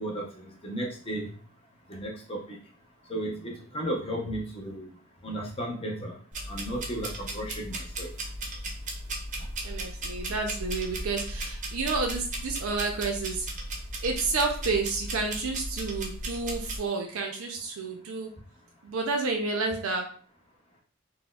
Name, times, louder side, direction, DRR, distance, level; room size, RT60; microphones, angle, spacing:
voice 1, 0.0-1.3 1.9-2.6 3.1-4.9 5.2-6.2 6.5-8.1, right 1 dB, 25° left, -1 dB, 0.7 m, -34 dB
sound 1, 6.3-16.8, right 1 dB, 40° right, 0.6 m, -36 dB
voice 2, 9.6-13.5 14.0-18.3 18.8-20.1, right 3 dB, 90° right, 3 dB, 0.5 m, -30 dB
4.1 x 2.1 x 2.3 m, 0.43 s
head